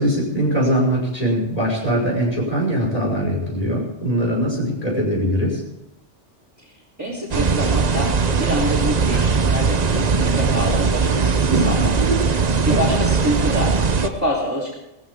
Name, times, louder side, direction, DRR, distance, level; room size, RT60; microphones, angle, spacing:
voice 1, 0.0-5.6, equal, 30° left, -3 dB, 5.8 m, -21 dB
voice 2, 7.0-8.1 8.4-12.0 12.7-14.7, equal, 15° right, -5 dB, 3.8 m, -26 dB
sound 1, 7.3-14.1, right 5 dB, 40° right, 0.8 m, -19 dB
19.0 x 14.5 x 3.7 m, 0.90 s
omnidirectional pair, 1.2 m